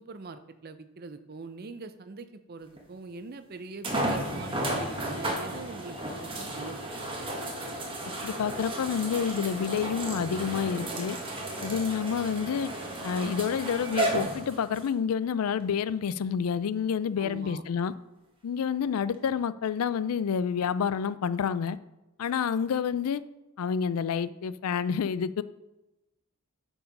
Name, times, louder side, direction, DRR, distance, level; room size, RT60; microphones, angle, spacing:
voice 1, 0.0-6.8 7.1-7.4 17.2-17.6, right 4 dB, 45° right, 11 dB, 0.5 m, -43 dB
sound 1, 2.8-2.9 3.8-14.9 15.6-15.7 19.1-19.2, right 1 dB, 25° right, 1.2 m, -33 dB
voice 2, 8.2-11.2 11.6-12.7 13.0-17.9 18.4-21.8 22.2-23.2 23.6-25.4, left 7 dB, 85° left, 15 dB, 0.4 m, -28 dB
8.2 x 4.6 x 5.3 m, 1.0 s
head